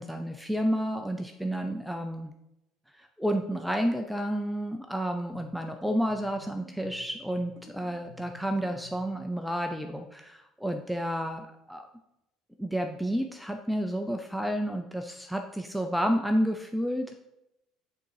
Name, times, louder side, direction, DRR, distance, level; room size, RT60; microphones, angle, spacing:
voice 1, 0.0-2.3 2.9-11.9 12.6-17.2, equal, ahead, 4 dB, 0.5 m, -30 dB
sound 1, 5.3-9.2, right 1 dB, 25° right, 2.6 m, -52 dB
8.4 x 3.9 x 4.7 m, 0.88 s
cardioid pair, 120°, 0 cm